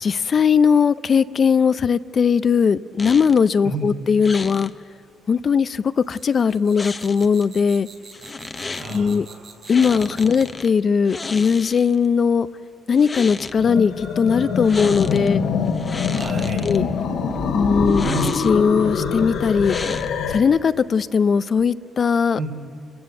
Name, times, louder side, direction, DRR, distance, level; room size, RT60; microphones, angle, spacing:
voice 1, 0.0-4.7 5.3-7.9 8.9-9.3 9.7-12.5 12.9-15.4 16.6-16.9 17.5-18.1 18.4-19.8 20.3-22.4, left 6 dB, 45° left, 15 dB, 0.4 m, -19 dB
sound 1, 3.0-3.5 4.2-4.7 6.8-7.5 8.1-9.0 9.7-10.7 11.1-12.1 12.9-13.6 14.6-15.3 15.7-16.8 17.9-18.7 19.6-20.3, left 3 dB, 30° left, 0.8 m, -33 dB
sound 2, 6.0-10.7, right 5 dB, 50° right, 4.8 m, -45 dB
voice 2, 8.8-9.6 9.8-10.3 16.1-16.8 18.0-18.3 22.3-22.5, right 3 dB, 70° right, 1 dB, 4.3 m, -31 dB
sound 3, 13.6-20.4, left 5 dB, 85° left, 2.2 m, -24 dB
28.5 x 14.0 x 8.1 m, 2.4 s
cardioid pair, 90°, 0 cm